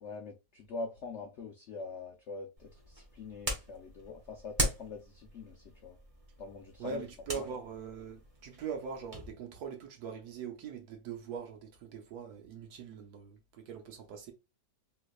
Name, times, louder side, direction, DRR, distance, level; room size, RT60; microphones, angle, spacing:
voice 1, 0.0-6.0 6.4-7.0 7.3-7.5, left 3 dB, 80° left, 0.6 m, -43 dB
sound 1, 2.6-9.3, right 1 dB, 30° right, 0.7 m, -40 dB
voice 2, 6.8-14.3, right 6 dB, 65° right, 1.2 m, -42 dB
3.3 x 3.0 x 2.4 m
omnidirectional pair, 1.9 m